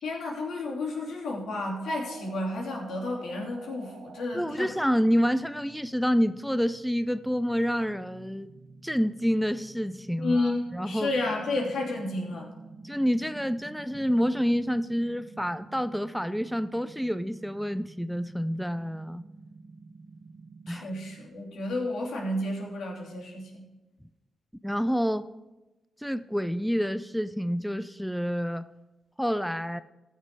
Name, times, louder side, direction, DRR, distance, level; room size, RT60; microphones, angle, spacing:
voice 1, 0.0-4.7 10.2-12.5 20.7-23.7, left 2 dB, 85° left, -1 dB, 3.1 m, -31 dB
sound 1, 1.8-21.3, right 3 dB, 50° right, 1.2 m, -49 dB
voice 2, 4.3-8.5 8.8-11.1 12.8-19.2 20.7-20.9 24.6-25.3 26.0-28.7 29.2-29.8, equal, ahead, 12 dB, 0.4 m, -28 dB
15.0 x 6.6 x 4.8 m, 1.1 s
cardioid pair, 90°, 0 cm